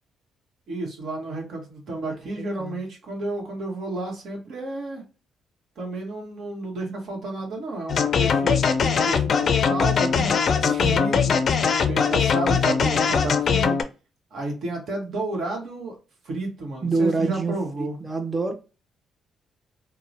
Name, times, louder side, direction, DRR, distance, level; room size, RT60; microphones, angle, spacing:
voice 1, 0.7-5.0 5.8-11.6 11.9-13.8 14.3-16.0 16.2-18.0, right 2 dB, 65° right, 1.1 m, -31 dB
sound 1, 7.9-13.8, left 6 dB, 55° left, 0.4 m, -21 dB
voice 2, 10.6-11.1 16.8-18.5, right 3 dB, 20° right, 0.7 m, -26 dB
2.9 x 2.0 x 2.6 m
cardioid pair, 90°, 0 cm